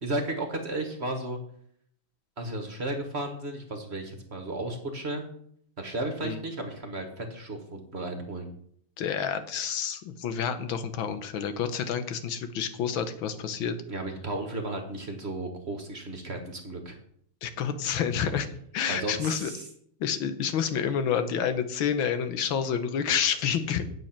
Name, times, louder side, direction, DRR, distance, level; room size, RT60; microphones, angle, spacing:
voice 1, 0.0-1.4 2.4-5.3 5.8-8.5 13.9-17.0 18.9-19.7, right 2 dB, 35° right, 4 dB, 1.6 m, -34 dB
voice 2, 9.0-13.8 17.4-18.5 18.7-19.5 20.0-23.8, left 7 dB, 85° left, 10 dB, 1.8 m, -29 dB
9.4 x 7.6 x 5.9 m, 0.65 s
omnidirectional pair, 2.1 m